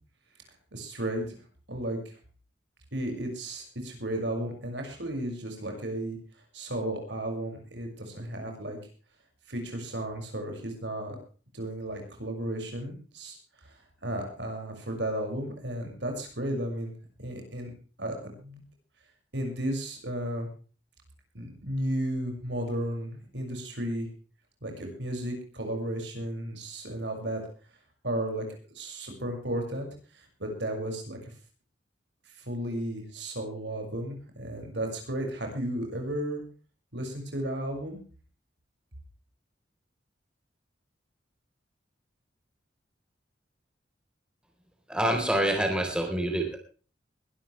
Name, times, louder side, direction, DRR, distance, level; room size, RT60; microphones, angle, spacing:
voice 1, 0.7-1.3 1.7-2.2 2.9-6.2 6.5-8.8 9.5-11.2 11.5-13.4 13.6-16.9 17.2-17.7 18.0-18.6 19.3-20.5 21.3-24.1 24.6-27.4 28.0-28.4 28.7-31.3 32.3-36.4 36.9-38.0, right 1 dB, 70° right, 3 dB, 6.3 m, -34 dB
voice 2, 44.9-46.6, right 1 dB, 5° right, 3 dB, 4.2 m, -26 dB
21.5 x 13.0 x 3.4 m, 0.38 s
head